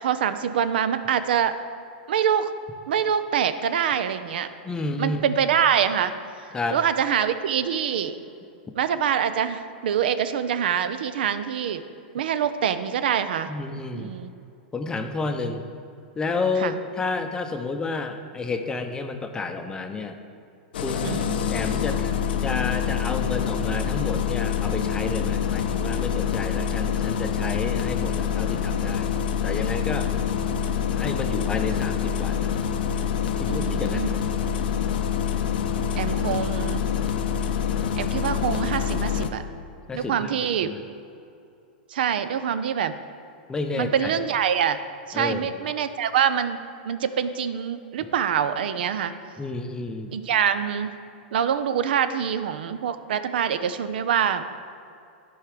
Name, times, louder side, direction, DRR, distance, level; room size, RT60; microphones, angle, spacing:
voice 1, 0.0-1.5 2.1-2.5 2.9-4.5 5.0-6.1 6.7-8.1 8.8-11.8 12.1-13.5 13.9-14.3 16.6-16.7 21.0-21.3 33.5-34.1 36.0-36.8 38.0-39.4 39.9-40.7 41.9-43.0 43.8-44.8 45.1-49.1 50.1-50.9 51.3-54.4, right 8 dB, 75° right, 12 dB, 0.5 m, -25 dB
voice 2, 4.6-5.3 6.5-6.8 13.5-14.1 14.7-15.7 16.2-20.2 20.8-22.1 22.4-29.1 29.4-30.1 30.9-32.5 33.4-34.2 39.9-40.3 40.6-40.8 43.5-44.1 45.1-45.6 49.4-50.1, left 3 dB, 15° left, 6 dB, 0.6 m, -30 dB
Engine starting, 20.7-39.3, left 8 dB, 75° left, 0.6 m, -26 dB
11.5 x 4.7 x 5.0 m, 2.6 s
hypercardioid pair, 125°, 5 cm